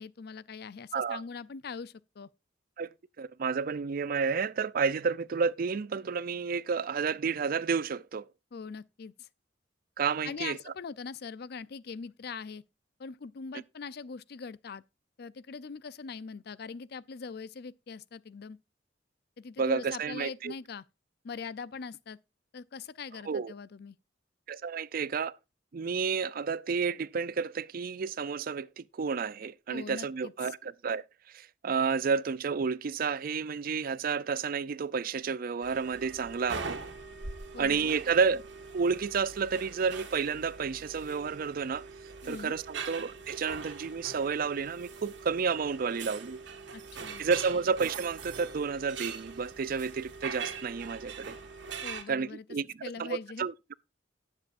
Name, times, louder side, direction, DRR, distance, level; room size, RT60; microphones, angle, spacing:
voice 1, 0.0-2.3 8.5-9.3 10.2-12.6 13.0-14.8 15.2-18.6 19.4-20.8 21.2-22.2 22.5-24.0 29.7-30.5 37.5-38.0 42.2-42.6 46.7-47.3 51.8-52.4 52.8-53.5, left 5 dB, 60° left, 0.5 m, -42 dB
voice 2, 3.2-8.2 10.0-10.6 19.6-20.5 23.3-23.5 24.5-25.4 25.7-31.0 31.3-36.8 37.6-38.4 38.7-41.8 42.2-46.4 47.2-51.4 52.1-52.7 53.0-53.7, right 5 dB, 55° right, 0.4 m, -31 dB
sound 1, 35.6-52.0, right 5 dB, 85° right, 1.8 m, -42 dB
18.0 x 7.4 x 2.5 m
head